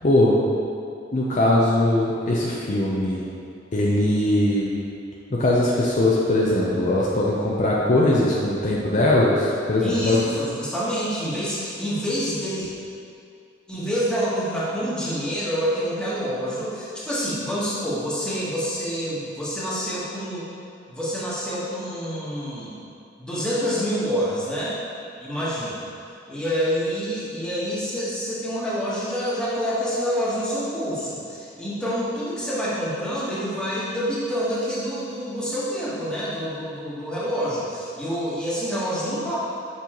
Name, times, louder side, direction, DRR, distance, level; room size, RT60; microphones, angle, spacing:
voice 1, 0.0-0.4 1.1-3.2 3.7-4.8 5.3-10.2, left 1 dB, 40° left, -5 dB, 0.6 m, -20 dB
voice 2, 9.8-12.7 13.7-20.4 20.9-22.8 23.2-24.8 25.2-25.8 26.3-39.4, equal, 5° left, -9 dB, 1.4 m, -27 dB
6.9 x 5.5 x 3.0 m, 2.5 s
head